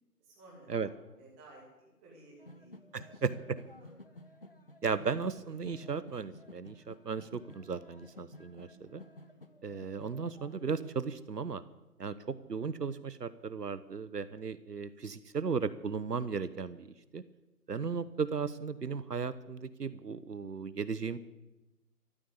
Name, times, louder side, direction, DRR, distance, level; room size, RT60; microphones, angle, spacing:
voice 1, 0.2-3.2 3.6-3.9 9.2-9.7, right 2 dB, 10° right, -5 dB, 2.6 m, -57 dB
sound 1, 2.4-10.9, left 1 dB, 35° left, 0.7 m, -53 dB
voice 2, 2.9-3.6 4.8-9.0 9.6-11.6 12.0-17.2 17.7-21.2, right 5 dB, 75° right, 15 dB, 1.0 m, -36 dB
14.0 x 11.0 x 8.4 m, 1.0 s
figure-of-eight pair, 165°, 48 cm